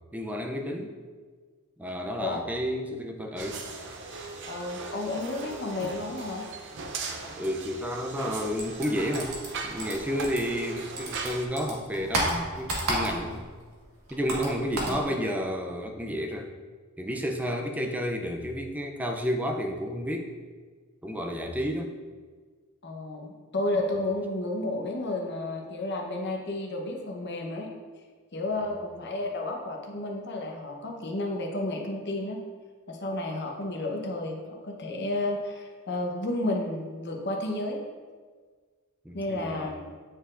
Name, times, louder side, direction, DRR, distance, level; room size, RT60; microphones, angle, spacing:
voice 1, 0.1-1.0 1.8-3.6 7.3-9.4 9.6-13.5 14.1-16.5 17.0-20.3 21.0-21.9 39.0-39.7, equal, 5° right, 3 dB, 0.4 m, -31 dB
sound 1, 3.4-11.5, right 3 dB, 55° right, 0.6 m, -39 dB
voice 2, 4.5-6.5 14.8-15.0 22.8-27.7 28.3-32.4 32.9-37.8 39.1-39.7, left 2 dB, 50° left, 1 dB, 0.9 m, -32 dB
sound 2, 8.6-10.7 11.0-13.5 13.7-15.0, right 1 dB, 80° right, 1.5 m, -31 dB
9.1 x 4.4 x 2.5 m, 1.5 s
head